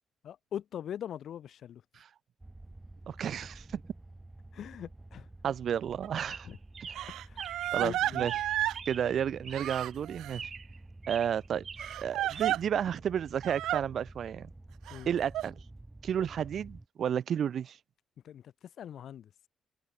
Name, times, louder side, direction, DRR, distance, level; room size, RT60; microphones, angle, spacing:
voice 1, 0.2-1.8 4.5-5.3 6.5-6.6 7.3-7.4 7.8-8.3 14.9-15.1 18.2-18.4 18.8-19.3, left 10 dB, 65° left, 2.0 m, -41 dB
sound 1, 2.4-16.9, right 2 dB, 15° right, 3.1 m, -50 dB
voice 2, 3.1-3.8 5.4-6.5 7.7-8.4 8.9-10.5 11.1-11.7 12.0-14.5 15.1-15.6 16.0-17.8, right 9 dB, 60° right, 2.7 m, -32 dB
Crying sobbing, 6.0-6.1 6.9-8.8 9.5-10.4 11.8-12.6 13.4-13.8 14.9-15.5, right 13 dB, 85° right, 2.3 m, -32 dB
Chirp tweet, 6.1-7.8 8.2-9.2 9.4-10.0 10.3-10.8 11.0-12.5, right 6 dB, 40° right, 2.0 m, -45 dB
cardioid pair, 90°, 0 cm